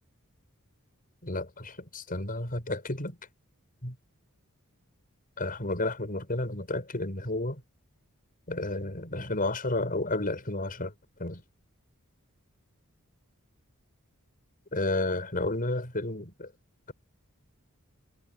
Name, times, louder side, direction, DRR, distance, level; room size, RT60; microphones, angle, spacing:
voice 1, 1.2-3.2 3.8-4.0 5.4-7.6 8.5-10.9 11.2-11.4 14.7-16.5, left 2 dB, 40° left, 6.7 m, -31 dB
head